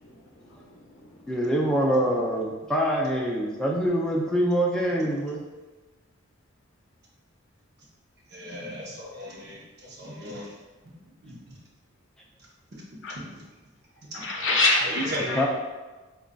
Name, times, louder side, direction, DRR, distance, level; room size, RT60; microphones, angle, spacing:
voice 1, 0.0-1.3 13.0-13.2 14.2-15.4, left 2 dB, 60° left, -1 dB, 0.7 m, -27 dB
voice 2, 1.3-5.4 15.4-15.5, equal, 5° left, -2 dB, 0.3 m, -24 dB
voice 3, 8.3-10.9 11.2-11.6 12.7-12.8 13.1-13.4 14.8-15.5, equal, 50° right, -4 dB, 0.8 m, -36 dB
4.9 x 2.4 x 2.2 m, 1.2 s
head